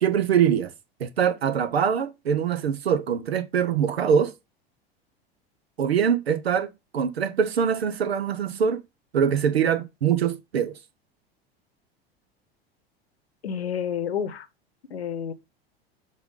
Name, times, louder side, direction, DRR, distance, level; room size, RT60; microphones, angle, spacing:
voice 1, 0.0-0.7 1.0-4.3 5.8-8.8 9.1-10.7, right 8 dB, 85° right, 0.9 m, -23 dB
voice 2, 13.4-14.5 14.9-15.3, left 8 dB, 85° left, 0.9 m, -29 dB
6.9 x 4.0 x 3.7 m
hypercardioid pair, 85°, 31 cm